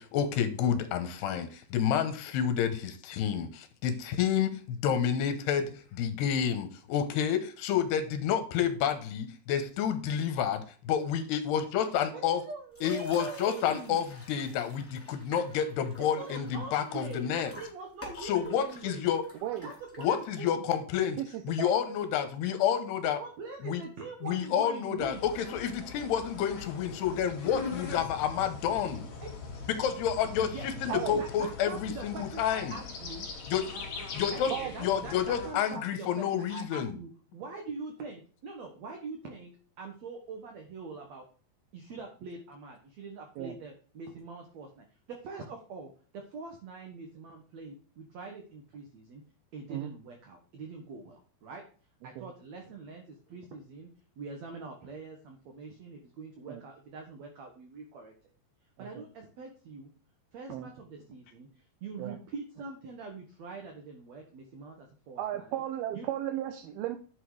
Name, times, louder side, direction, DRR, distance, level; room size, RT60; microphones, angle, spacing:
voice 1, 0.0-12.4 12.8-17.5 18.2-19.2 20.0-23.2 23.6-23.8 24.2-29.1 29.7-32.8 33.5-33.7 34.1-34.5 34.8-37.0, left 8 dB, 80° left, 9 dB, 3.2 m, -29 dB
voice 2, 12.1-14.1 16.0-19.1 19.6-20.7 23.0-25.2 29.2-29.3 30.4-33.3 34.3-39.5 39.8-41.2 41.7-49.2 49.5-51.6 52.0-53.9 54.2-58.1 58.8-59.9 60.3-61.5 61.8-65.5 65.9-66.1, right 3 dB, 60° right, 3 dB, 2.0 m, -43 dB
sound 1, 12.7-20.5, left 2 dB, 5° left, 2.0 m, -51 dB
voice 3, 21.2-21.7 30.9-31.2 34.5-34.7 43.4-43.6 49.7-49.9 52.2-52.3 56.5-56.6 58.8-59.0 60.5-60.7 62.0-62.2 65.2-67.0, right 12 dB, 75° right, 5 dB, 2.7 m, -35 dB
sound 2, 25.0-35.5, left 4 dB, 50° left, 3.4 m, -41 dB
11.0 x 6.3 x 4.9 m, 0.40 s
omnidirectional pair, 4.7 m